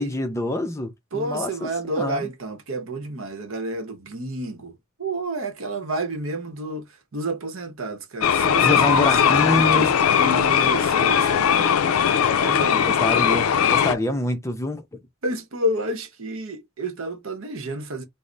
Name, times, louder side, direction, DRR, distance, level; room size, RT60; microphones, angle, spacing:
voice 1, 0.0-1.7 2.0-2.3 8.6-9.9 12.8-15.0, left 2 dB, 15° left, 0.4 m, -26 dB
voice 2, 1.1-9.9 10.2-11.8 12.3-12.8 15.2-18.0, right 1 dB, 70° right, 0.8 m, -30 dB
sound 1, 8.2-13.9, left 8 dB, 75° left, 0.4 m, -19 dB
3.2 x 2.0 x 3.8 m
head